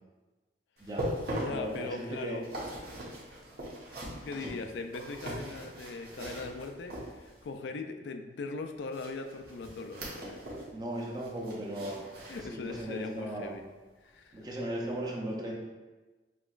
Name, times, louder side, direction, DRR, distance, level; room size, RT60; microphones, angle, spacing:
voice 1, 0.8-1.1 1.5-2.4 4.4-4.6 10.7-12.1 12.4-13.6 14.3-15.6, right 1 dB, 25° right, -2 dB, 0.6 m, -37 dB
sound 1, 0.8-7.5 8.9-10.7 11.0-13.0 13.4-13.6 14.1-14.2, equal, 60° right, 1.0 m, -40 dB
voice 2, 1.4-2.4 3.9-10.4 12.3-13.6 14.0-14.5, left 3 dB, 85° left, 5 dB, 0.4 m, -40 dB
5.9 x 2.9 x 2.4 m, 1.2 s
head